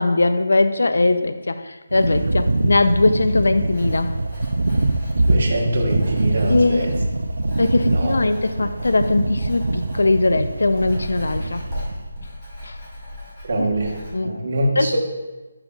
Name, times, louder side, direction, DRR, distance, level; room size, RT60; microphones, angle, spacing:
voice 1, 0.0-4.1 6.5-6.9 7.6-11.6 12.6-12.7 13.6-13.7 14.1-14.4 14.8-15.0, left 2 dB, 85° left, 10 dB, 0.5 m, -20 dB
sound 1, 1.9-12.1, right 2 dB, 85° right, 0.5 m, -23 dB
Writing, 3.7-14.1, equal, 20° left, 2.0 m, -36 dB
voice 2, 5.2-6.9 7.9-8.1 13.4-13.9 14.2-15.0, right 1 dB, 45° right, -1 dB, 1.3 m, -24 dB
9.8 x 5.2 x 2.4 m, 1.2 s
hypercardioid pair, 175°, 0 cm